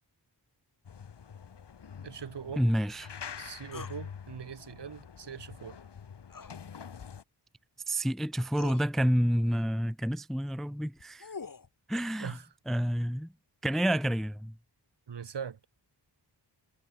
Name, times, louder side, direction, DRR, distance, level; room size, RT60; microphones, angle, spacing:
sound 1, 0.8-7.2, left 7 dB, 70° left, 3.2 m, -46 dB
voice 1, 2.0-2.6 3.4-5.8 12.2-12.4 15.1-15.6, right 7 dB, 70° right, 3.0 m, -41 dB
voice 2, 2.6-3.1 7.9-11.3 11.9-12.4 12.7-13.3 13.6-14.5, equal, ahead, 0.6 m, -29 dB
sound 2, 3.7-4.0 6.3-6.6 7.9-8.0 8.5-8.8 10.8-11.7, left 5 dB, 50° left, 6.9 m, -43 dB
wide cardioid pair, 145°, 42 cm